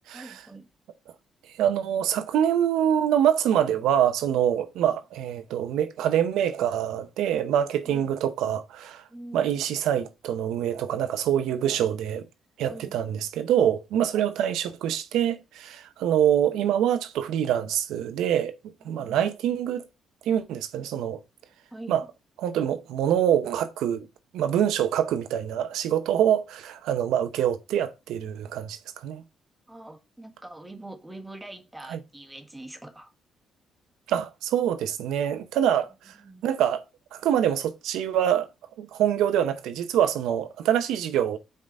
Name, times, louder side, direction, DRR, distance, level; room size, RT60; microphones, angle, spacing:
voice 1, 0.1-0.6 7.8-8.1 9.1-9.4 12.7-12.9 14.1-14.2 18.8-19.2 21.7-22.1 29.7-33.1 36.2-36.4, right 1 dB, 10° right, 1.3 m, -43 dB
voice 2, 1.6-9.0 9.3-12.3 12.6-18.5 18.8-19.8 20.3-21.2 21.9-22.0 22.4-24.1 24.3-29.2 31.9-32.0 34.1-36.1 36.4-36.8 37.1-38.5 38.8-41.4, right 10 dB, 85° right, 0.7 m, -25 dB
5.3 x 3.9 x 5.3 m
cardioid pair, 90°, 0 cm